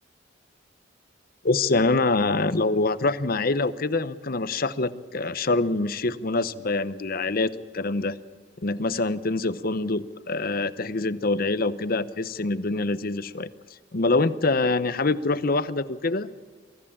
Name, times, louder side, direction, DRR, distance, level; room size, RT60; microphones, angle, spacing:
voice 1, 1.4-8.2 8.6-13.5 13.9-16.3, left 3 dB, 50° left, 15 dB, 0.8 m, -25 dB
23.5 x 14.5 x 8.7 m, 1.5 s
head